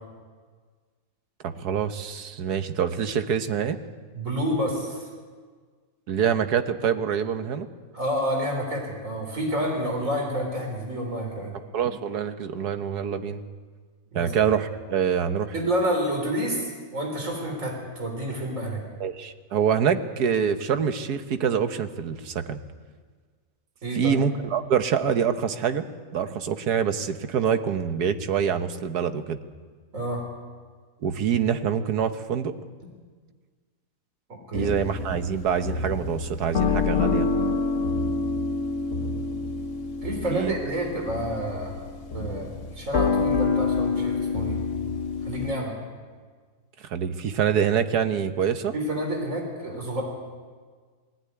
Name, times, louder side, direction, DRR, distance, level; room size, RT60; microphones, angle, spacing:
voice 1, 1.4-3.8 6.1-7.7 11.7-13.4 14.2-15.5 19.0-22.6 24.0-25.9 26.1-29.4 31.0-32.5 34.5-37.3 40.3-40.5 46.9-48.7, right 7 dB, 85° right, 9 dB, 1.6 m, -25 dB
voice 2, 4.1-5.1 7.9-11.6 14.1-14.3 15.5-18.8 23.8-24.2 29.9-30.2 34.3-34.7 40.0-41.9 42.1-44.6 45.2-45.8 48.7-50.0, equal, 55° right, 1 dB, 4.1 m, -29 dB
sound 1, 34.5-45.5, left 4 dB, 55° left, 1.4 m, -27 dB
20.0 x 15.0 x 9.6 m, 1.5 s
omnidirectional pair, 1.6 m